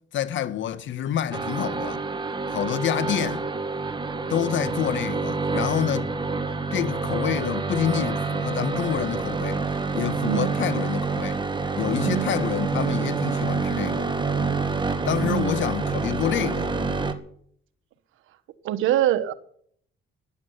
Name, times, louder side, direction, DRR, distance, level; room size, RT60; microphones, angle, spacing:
voice 1, 0.1-2.0 2.5-3.5 4.3-6.2 6.7-9.6 9.9-11.4 11.7-14.1 15.1-16.7, left 10 dB, 70° left, 1.5 m, -27 dB
sound 1, 1.3-17.1, right 4 dB, 25° right, 2.0 m, -27 dB
voice 2, 10.2-10.5 12.0-12.4 15.2-15.7 18.6-19.3, right 12 dB, 85° right, 1.4 m, -25 dB
13.0 x 11.0 x 9.4 m
cardioid pair, 90°, 20 cm